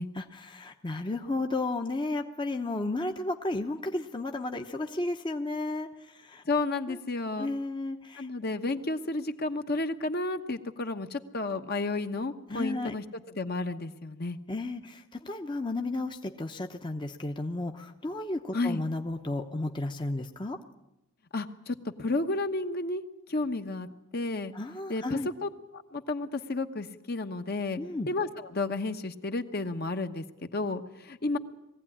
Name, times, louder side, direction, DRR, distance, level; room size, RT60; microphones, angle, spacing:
voice 1, 0.2-5.9 6.2-6.4 6.9-7.0 7.4-8.3 12.5-12.9 14.5-20.6 24.5-25.3 27.8-28.1, left 2 dB, 25° left, 5 dB, 0.8 m, -33 dB
voice 2, 6.4-7.5 8.2-14.4 18.5-18.8 21.3-23.0 23.3-23.9 24.1-24.5 24.9-27.8 28.1-30.2 30.5-31.4, left 2 dB, 50° left, 7 dB, 1.1 m, -32 dB
21.0 x 16.0 x 10.0 m, 0.92 s
head